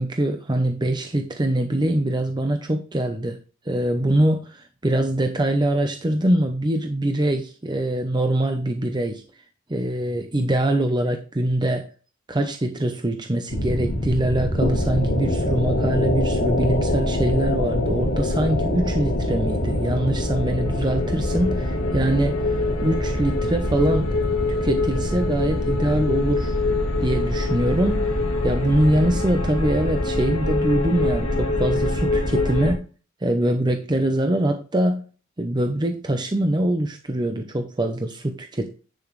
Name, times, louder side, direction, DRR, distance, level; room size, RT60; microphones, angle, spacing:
voice 1, 0.0-3.4 3.7-9.2 9.7-11.9 12.3-24.1 24.6-26.6 27.0-28.1 28.4-32.8 33.2-35.0 35.4-38.7, right 1 dB, 20° right, 5 dB, 0.8 m, -23 dB
sound 1, 13.5-32.7, left 2 dB, 80° left, 2.1 m, -24 dB
10.5 x 6.0 x 3.2 m, 0.36 s
head